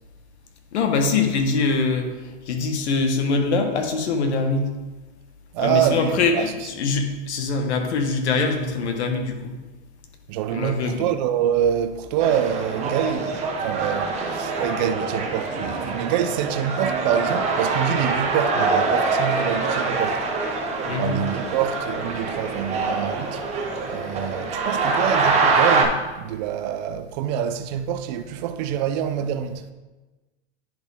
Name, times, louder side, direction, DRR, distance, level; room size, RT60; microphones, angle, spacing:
voice 1, 0.7-4.7 5.6-9.5 10.5-11.1 20.9-21.2, left 4 dB, 90° left, 1.4 m, -23 dB
voice 2, 5.5-6.5 10.3-20.3 20.9-23.4 23.8-29.7, right 9 dB, 45° right, 0.4 m, -26 dB
sound 1, 12.2-25.8, right 4 dB, 20° right, 0.8 m, -24 dB
10.0 x 4.3 x 3.4 m
supercardioid pair, 155°, 33 cm